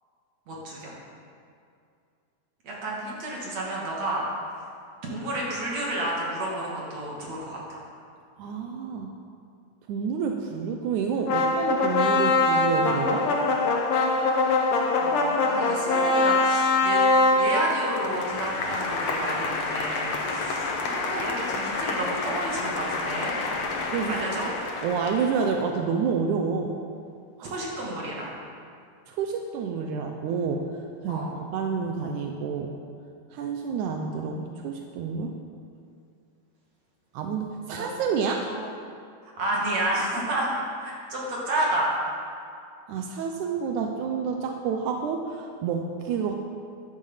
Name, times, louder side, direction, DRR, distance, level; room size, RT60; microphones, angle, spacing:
voice 1, 0.5-0.9 2.6-4.2 5.0-7.8 15.0-17.0 17.3-23.4 24.1-24.5 27.5-28.3 31.1-31.3 38.2-38.7 39.4-40.5 40.8-41.9, right 1 dB, 45° right, -4 dB, 3.3 m, -30 dB
voice 2, 8.4-9.1 9.9-13.3 23.9-24.2 24.8-26.7 27.4-27.6 29.1-30.7 31.0-32.7 33.3-35.3 37.1-38.5 42.9-46.4, right 6 dB, 80° right, 3 dB, 1.8 m, -29 dB
sound 1, 11.3-25.4, left 3 dB, 70° left, 1.3 m, -25 dB
14.5 x 11.5 x 5.7 m, 2.4 s
omnidirectional pair, 4.5 m